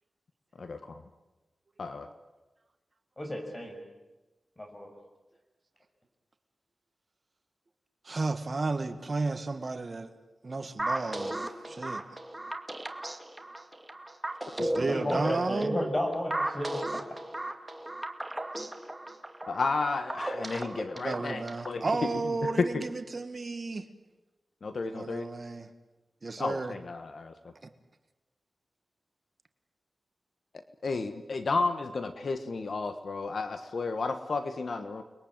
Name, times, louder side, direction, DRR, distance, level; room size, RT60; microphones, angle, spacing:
voice 1, 3.2-3.8 4.6-4.9 14.9-17.2, left 1 dB, 25° left, 3 dB, 7.0 m, -32 dB
voice 2, 8.0-10.1 10.4-12.0 14.6-15.8 21.0-23.9 24.9-25.7 26.2-26.7, right 3 dB, 45° right, 9 dB, 1.7 m, -33 dB
sound 1, 10.8-21.8, right 1 dB, 15° right, 2.4 m, -36 dB
voice 3, 19.5-21.8 22.4-22.8 24.6-25.3 26.4-27.3 30.8-35.0, left 3 dB, 65° left, 9 dB, 1.5 m, -32 dB
30.0 x 22.0 x 9.0 m, 1.1 s
wide cardioid pair, 85°, 0 cm